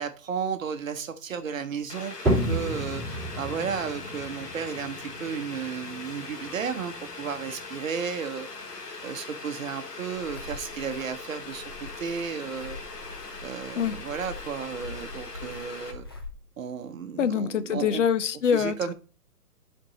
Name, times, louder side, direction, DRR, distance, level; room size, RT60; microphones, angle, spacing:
voice 1, 0.0-8.5 9.0-11.7 12.0-12.8 13.4-16.0 16.6-18.0 18.5-18.9, right 6 dB, 55° right, 0.9 m, -33 dB
Boiling, 1.9-15.9, left 3 dB, 85° left, 1.5 m, -41 dB
sound 1, 2.3-7.7, right 1 dB, ahead, 2.5 m, -32 dB
sound 2, 10.1-16.3, left 3 dB, 15° left, 0.4 m, -44 dB
voice 2, 17.2-18.9, left 7 dB, 50° left, 0.7 m, -25 dB
8.8 x 4.5 x 4.0 m
figure-of-eight pair, 130°, 46 cm